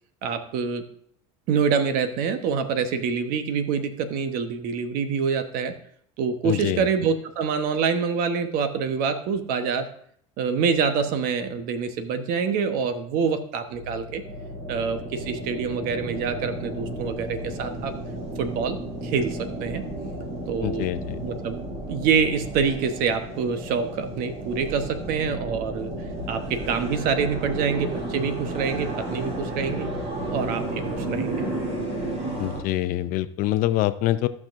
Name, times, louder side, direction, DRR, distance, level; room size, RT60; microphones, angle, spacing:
voice 1, 0.2-0.8 1.5-5.7 6.2-9.9 10.4-14.2 14.7-17.9 18.4-19.9 20.5-20.9 21.2-25.9 26.3-29.9 30.3-31.4, right 6 dB, 60° right, 9 dB, 1.1 m, -26 dB
voice 2, 6.4-6.9 20.6-21.2 32.4-34.3, left 15 dB, 60° left, 13 dB, 0.6 m, -25 dB
sound 1, 13.7-32.6, right 1 dB, 40° right, 3.2 m, -33 dB
14.5 x 6.0 x 2.6 m, 0.64 s
supercardioid pair, 100°, 17 cm